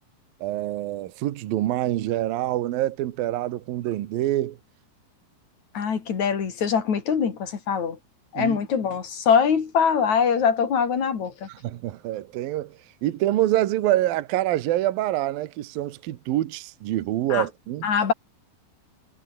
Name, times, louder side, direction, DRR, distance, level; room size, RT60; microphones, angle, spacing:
voice 1, 0.4-4.6 8.4-8.6 11.5-17.9, right 14 dB, 70° right, 2.3 m, -26 dB
voice 2, 5.7-8.0 8.3-11.5 17.3-17.4 17.8-18.1, left 7 dB, 40° left, 3.8 m, -23 dB
omnidirectional pair, 5.7 m